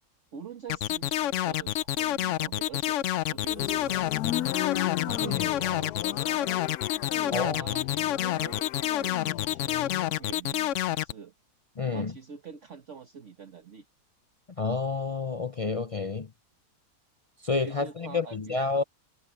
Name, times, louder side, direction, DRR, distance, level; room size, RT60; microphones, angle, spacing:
voice 1, 0.3-3.0 3.3-4.5 5.0-6.6 7.2-11.3 11.9-13.8 17.6-18.6, right 6 dB, 50° right, 1.6 m, -45 dB
sound 1, 0.7-11.1, left 13 dB, 70° left, 0.8 m, -28 dB
sound 2, 3.4-10.2, left 14 dB, 90° left, 1.2 m, -36 dB
voice 2, 11.8-12.1 14.6-16.3 17.4-18.8, left 4 dB, 55° left, 0.3 m, -29 dB
omnidirectional pair, 1.6 m